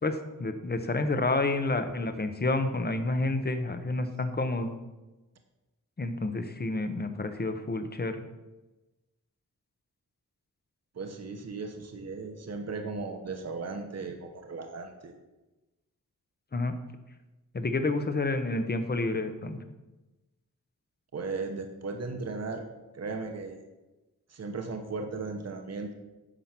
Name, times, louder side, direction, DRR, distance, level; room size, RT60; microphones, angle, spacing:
voice 1, 0.0-4.7 6.0-8.2 16.5-16.7 17.5-19.6, left 2 dB, 30° left, 9 dB, 0.9 m, -29 dB
voice 2, 10.9-15.1 21.1-22.7 22.9-23.6 24.3-25.9, right 3 dB, 50° right, 5 dB, 1.1 m, -36 dB
10.0 x 6.9 x 6.0 m, 1.1 s
wide cardioid pair, 155°, 33 cm